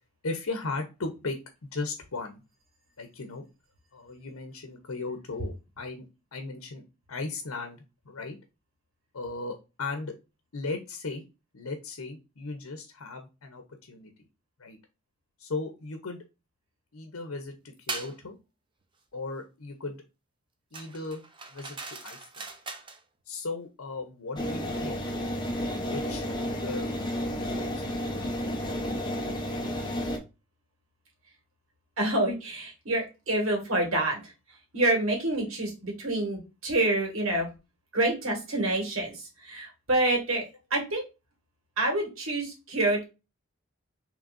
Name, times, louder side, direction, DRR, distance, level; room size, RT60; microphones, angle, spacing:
voice 1, 0.2-1.4 1.7-2.4 3.0-3.4 3.9-6.0 6.3-6.8 7.1-8.4 9.1-10.1 10.5-11.2 11.5-14.1 14.6-14.8 15.4-16.2 16.9-18.3 19.1-20.0 20.7-21.2 21.5-22.5 23.3-25.0 25.9-26.9 27.2-27.8, left 3 dB, 85° left, 5 dB, 0.8 m, -37 dB
sound 1, 17.9-18.2 20.7-23.0, right 4 dB, 20° right, 0.5 m, -39 dB
sound 2, 24.4-30.2, equal, 20° left, 0.8 m, -31 dB
voice 2, 32.0-34.3 34.7-37.5 37.9-40.4 40.7-41.0 41.8-43.0, right 2 dB, 75° right, 1 dB, 1.9 m, -27 dB
6.1 x 3.4 x 2.6 m, 0.28 s
head